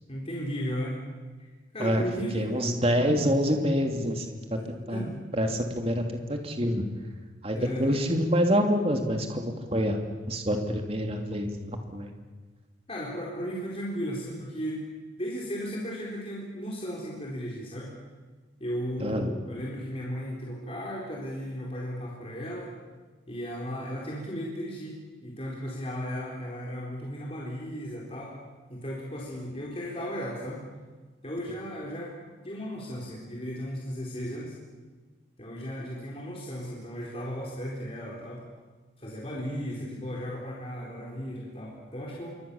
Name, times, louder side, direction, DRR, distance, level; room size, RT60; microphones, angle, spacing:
voice 1, 0.1-1.0 1.7-2.6 4.9-5.2 7.5-8.0 12.9-14.8 15.2-17.9 18.6-22.7 23.3-28.4 28.7-30.6 31.2-32.1 32.4-34.5 35.4-38.4 39.0-42.4, equal, 30° left, -3 dB, 4.4 m, -35 dB
voice 2, 2.3-4.4 4.7-6.8 7.4-10.0 10.3-12.1 19.0-19.3, equal, 30° right, 4 dB, 2.8 m, -27 dB
26.5 x 24.0 x 7.2 m, 1.3 s
head